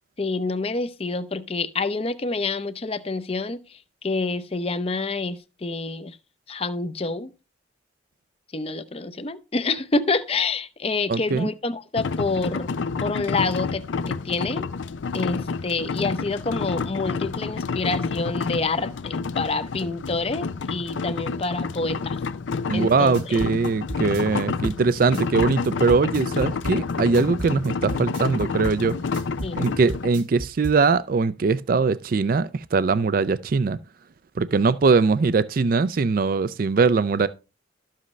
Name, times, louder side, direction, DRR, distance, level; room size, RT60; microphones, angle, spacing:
voice 1, 0.2-3.6 4.0-6.2 6.5-7.3 8.5-14.7 15.1-22.2 22.7-23.4 29.4-29.6, left 3 dB, 30° left, 0.6 m, -27 dB
voice 2, 11.1-11.5 22.7-29.0 29.6-33.8 34.4-37.3, right 4 dB, 50° right, 0.4 m, -21 dB
sound 1, 12.0-30.1, left 4 dB, 90° left, 0.5 m, -29 dB
sound 2, 22.9-30.8, right 1 dB, 80° right, 2.5 m, -34 dB
12.5 x 7.5 x 3.1 m
head